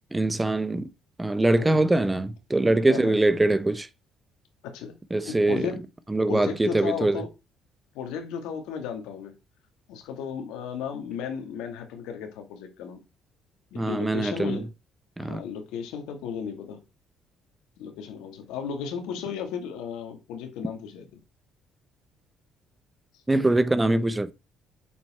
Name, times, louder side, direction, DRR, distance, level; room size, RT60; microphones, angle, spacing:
voice 1, 0.1-0.9 1.2-3.9 5.1-5.6 6.1-7.2 13.7-14.6 15.2-15.4 23.3-24.3, right 2 dB, 15° right, 1.1 m, -23 dB
voice 2, 4.6-5.0 5.2-5.8 6.3-7.3 7.9-9.3 9.9-13.0 13.7-14.7 15.2-16.8 17.8-21.1, left 7 dB, 80° left, 2.4 m, -34 dB
8.6 x 7.2 x 4.4 m
supercardioid pair, 70°, 0 cm